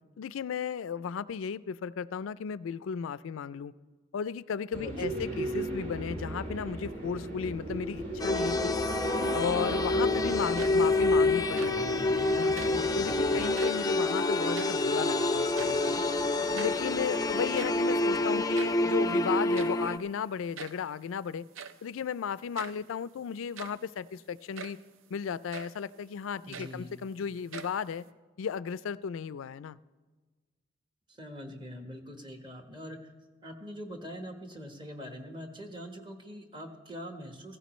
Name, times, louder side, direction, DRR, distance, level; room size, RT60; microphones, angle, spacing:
voice 1, 0.2-3.7 4.1-8.7 9.3-12.0 12.3-12.5 13.0-16.0 16.5-21.4 21.8-24.8 25.1-28.1 28.4-29.8, left 7 dB, 80° left, 18 dB, 0.4 m, -35 dB
voice 2, 4.7-5.2 12.7-12.9 26.4-27.0 31.1-33.0 33.4-37.6, equal, 25° right, 4 dB, 1.2 m, -43 dB
sound 1, 4.7-13.5, right 1 dB, 40° right, 3.2 m, -37 dB
sound 2, 8.2-20.0, left 2 dB, 20° left, 0.4 m, -27 dB
sound 3, 10.4-11.0 11.4-11.9 12.5-12.9 13.4-13.9 14.3-15.1 15.4-16.0 16.3-16.4 16.5-16.9 17.4-18.9 19.5-19.9 20.5-20.9 21.5-21.9 22.5-22.9 23.4-23.9 24.5-24.9 25.5-25.8 26.3-27.1 27.5-28.1, right 6 dB, 75° right, 0.5 m, -45 dB
16.0 x 15.5 x 3.1 m, 1.3 s
head